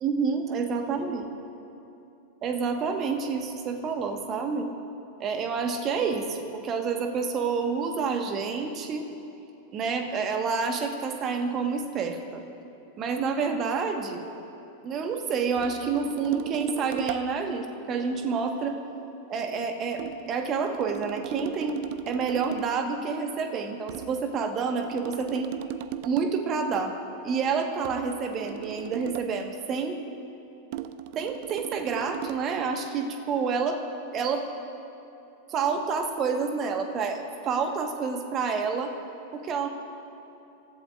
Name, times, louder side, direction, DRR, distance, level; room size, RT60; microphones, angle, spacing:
voice 1, 0.0-1.3 2.4-4.7 5.2-9.1 9.7-12.4 13.0-14.2 14.8-18.8 19.3-21.8 22.1-25.5 26.0-27.0 27.2-30.0 31.1-33.8 34.1-34.4 35.5-38.9 39.3-39.7, right 5 dB, 30° right, 5 dB, 1.5 m, -28 dB
sound 1, 15.6-17.4 20.0-22.8 23.9-26.4 27.8-29.4 30.7-32.5, right 12 dB, 50° right, 0.5 m, -38 dB
27.5 x 14.5 x 2.5 m, 2.9 s
figure-of-eight pair, 90°, 0 cm